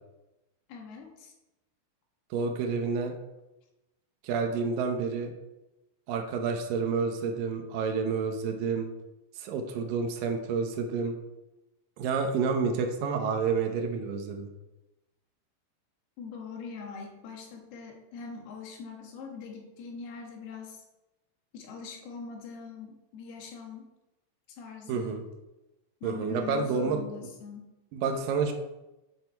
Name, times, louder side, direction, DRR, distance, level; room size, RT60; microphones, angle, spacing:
voice 1, 0.7-1.3 16.2-20.8 21.5-23.9 24.5-25.2 26.0-27.7, left 5 dB, 65° left, 1 dB, 3.2 m, -42 dB
voice 2, 2.3-3.1 4.2-5.3 6.1-8.9 9.4-11.2 12.0-14.5 24.9-25.2 26.0-27.0 27.9-28.5, right 5 dB, 80° right, 4 dB, 2.0 m, -29 dB
10.0 x 7.0 x 4.5 m, 0.99 s
omnidirectional pair, 5.4 m